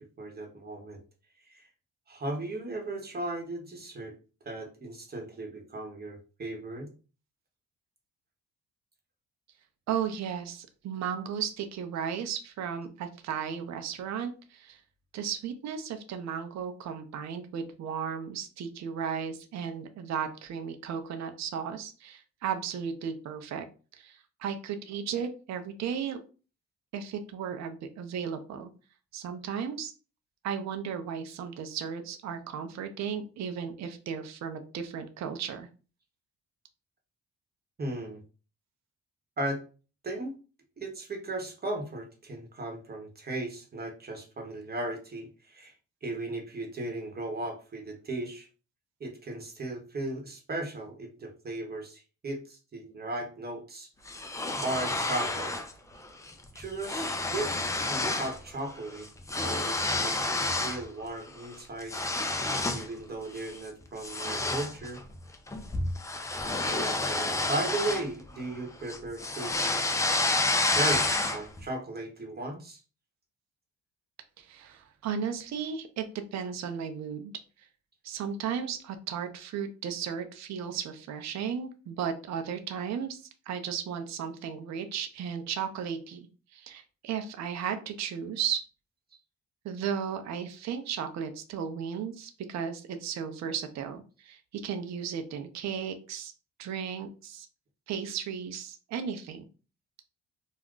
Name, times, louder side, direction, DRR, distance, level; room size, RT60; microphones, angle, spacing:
voice 1, 0.2-1.0 1.5-1.7 2.1-4.2 4.4-6.9 37.8-38.2 39.4-39.6 40.0-40.3 40.8-45.7 46.0-48.5 49.0-53.9 54.6-55.5 56.5-57.5 57.9-59.1 59.4-62.0 62.7-65.0 66.7-69.8 70.6-72.8, right 2 dB, 30° right, 2 dB, 0.9 m, -36 dB
voice 2, 9.9-14.8 15.1-23.7 23.9-26.2 26.9-28.7 29.1-29.9 30.4-35.7 74.4-77.3 78.0-88.6 89.6-96.3 96.6-97.5 97.9-99.4, right 7 dB, 65° right, 7 dB, 0.6 m, -35 dB
sound 1, 54.1-55.7 56.0-56.3 56.6-58.4 58.7-60.8 61.3-62.9 63.3-63.6 64.0-68.6 68.9-71.6, left 2 dB, 10° left, 0.4 m, -29 dB
2.4 x 2.1 x 3.6 m, 0.35 s
cardioid pair, 90°, 30 cm